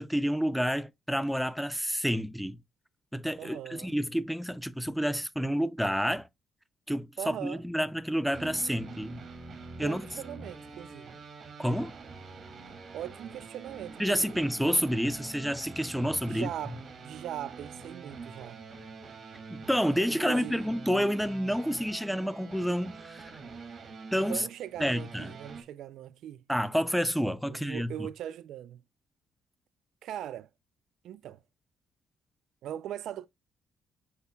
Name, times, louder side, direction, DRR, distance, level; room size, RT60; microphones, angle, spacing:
voice 1, 0.0-2.6 3.1-6.3 6.9-9.2 9.8-10.1 11.6-12.0 14.0-16.5 19.5-23.3 24.1-24.4 24.8-25.3 26.5-27.9, equal, ahead, 0.5 m, -29 dB
voice 2, 3.4-3.9 7.2-7.6 9.7-11.1 12.9-14.4 16.3-18.6 20.1-20.6 24.2-26.4 27.5-28.8 30.0-30.5 31.0-31.4 32.6-33.3, right 11 dB, 80° right, 0.4 m, -40 dB
sound 1, 8.3-25.6, right 4 dB, 50° right, 1.9 m, -46 dB
8.0 x 5.6 x 2.2 m
cardioid pair, 90°, 0 cm